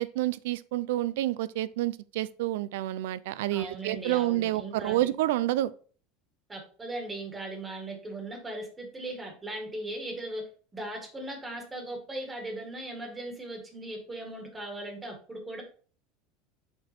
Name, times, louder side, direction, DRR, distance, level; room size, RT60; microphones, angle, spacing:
voice 1, 0.0-5.7, right 15 dB, 75° right, 0.5 m, -29 dB
voice 2, 3.5-5.1 6.5-15.6, right 1 dB, 10° right, 1.7 m, -38 dB
6.8 x 4.4 x 4.3 m
supercardioid pair, 165°, 0 cm